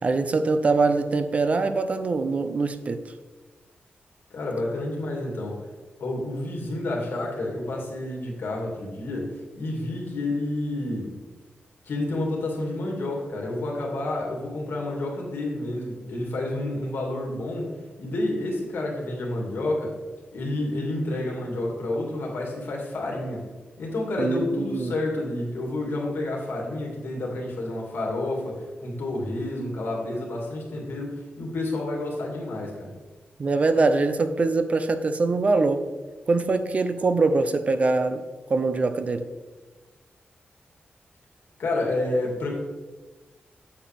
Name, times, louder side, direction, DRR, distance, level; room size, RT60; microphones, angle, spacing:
voice 1, 0.0-3.0 24.2-24.9 33.4-35.8 36.3-38.2 38.5-39.3, right 3 dB, 35° right, 9 dB, 0.5 m, -23 dB
voice 2, 4.3-5.6 6.0-11.1 11.8-17.7 18.0-20.0 20.3-23.4 23.8-32.9 41.6-42.5, left 2 dB, 75° left, -1 dB, 2.4 m, -29 dB
8.5 x 7.7 x 3.5 m, 1.2 s
wide cardioid pair, 165°, 4 cm